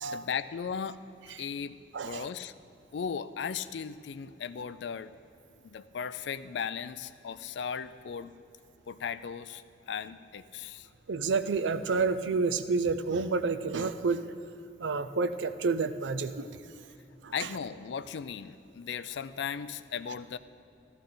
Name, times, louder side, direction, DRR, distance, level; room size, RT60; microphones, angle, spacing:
voice 1, 0.1-1.0 1.4-1.7 2.0-2.5 2.9-5.1 5.7-8.3 8.9-9.6 9.9-10.8 17.3-20.4, left 7 dB, 70° left, 14 dB, 0.4 m, -36 dB
voice 2, 1.9-2.3 11.1-14.2 14.8-16.6 17.2-17.3, right 4 dB, 85° right, 11 dB, 0.5 m, -29 dB
14.0 x 13.5 x 3.9 m, 2.6 s
head